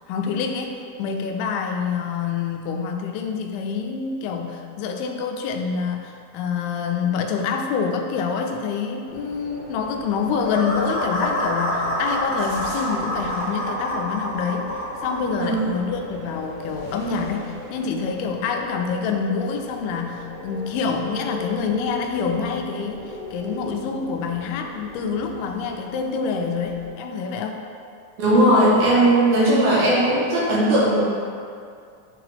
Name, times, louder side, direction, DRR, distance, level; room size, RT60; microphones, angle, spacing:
voice 1, 0.1-14.7 15.0-27.6, left 5 dB, 90° left, 3 dB, 2.6 m, -26 dB
sound 1, 9.1-26.9, left 1 dB, 90° right, 3.8 m, -38 dB
sound 2, 10.4-15.2, left 1 dB, 65° left, 1.9 m, -26 dB
voice 2, 28.2-31.0, right 1 dB, 65° right, -6 dB, 2.2 m, -17 dB
10.0 x 3.6 x 3.4 m, 2.3 s
omnidirectional pair, 4.3 m